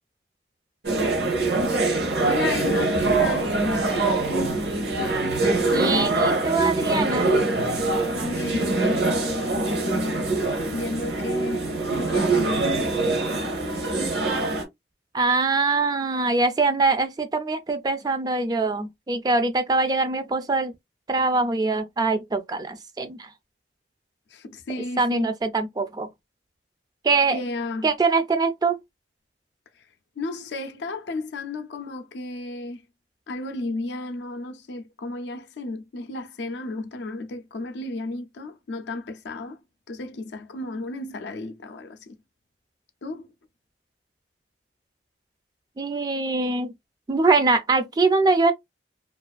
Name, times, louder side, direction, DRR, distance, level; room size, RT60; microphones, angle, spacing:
sound 1, 0.8-14.6, right 2 dB, 65° right, 0.7 m, -24 dB
voice 1, 2.2-3.5 8.2-10.3 10.7-11.7 11.9-12.7 24.3-25.3 27.3-27.9 30.2-32.8 33.3-39.6 39.9-42.2 43.0-43.3, left 2 dB, 80° left, 0.4 m, -33 dB
voice 2, 5.7-7.3 15.1-20.7 21.1-23.3 25.0-26.1 27.0-27.4 27.8-28.8 45.8-46.7 47.1-48.5, right 3 dB, 25° right, 0.3 m, -23 dB
2.4 x 2.4 x 2.2 m
head